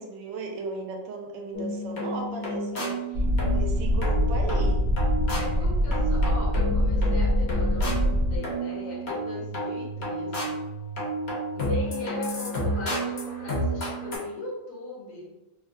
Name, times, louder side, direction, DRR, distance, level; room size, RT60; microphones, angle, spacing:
voice 1, 0.0-3.2 3.5-4.8, right 3 dB, 75° right, 2 dB, 1.2 m, -36 dB
sound 1, 1.5-14.2, right 1 dB, 50° left, 0.9 m, -31 dB
sound 2, 3.1-8.4, left 1 dB, 45° right, 0.6 m, -24 dB
voice 2, 5.3-10.6 11.5-15.5, left 2 dB, 75° left, -4 dB, 1.5 m, -38 dB
3.5 x 2.0 x 2.5 m, 0.95 s
omnidirectional pair, 2.0 m